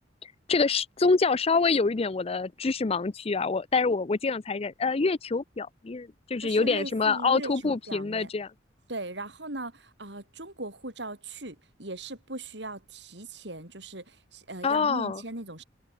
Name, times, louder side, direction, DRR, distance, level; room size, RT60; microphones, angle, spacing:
voice 1, 0.5-8.5 14.6-15.2, left 4 dB, 35° left, 0.5 m, -26 dB
voice 2, 6.4-8.3 8.9-15.6, right 2 dB, 70° right, 7.7 m, -39 dB
head